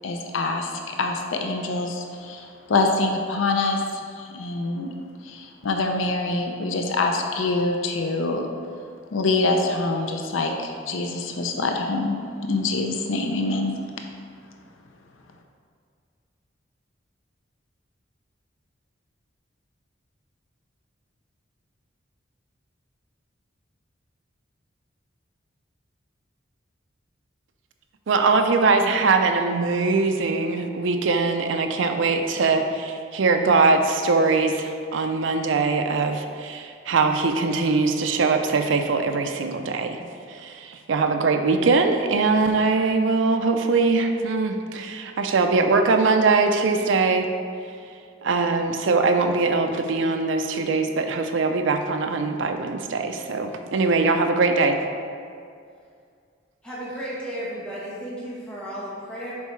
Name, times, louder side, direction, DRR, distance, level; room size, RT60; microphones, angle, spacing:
voice 1, 0.0-4.9 5.2-8.5 9.1-12.2 12.5-13.7, left 3 dB, 85° left, 3 dB, 0.5 m, -25 dB
voice 2, 28.1-40.0 40.3-47.3 48.2-54.8, right 4 dB, 75° right, 5 dB, 0.5 m, -22 dB
voice 3, 56.6-59.3, equal, 5° left, -9 dB, 1.1 m, -34 dB
7.0 x 4.6 x 3.1 m, 2.2 s
head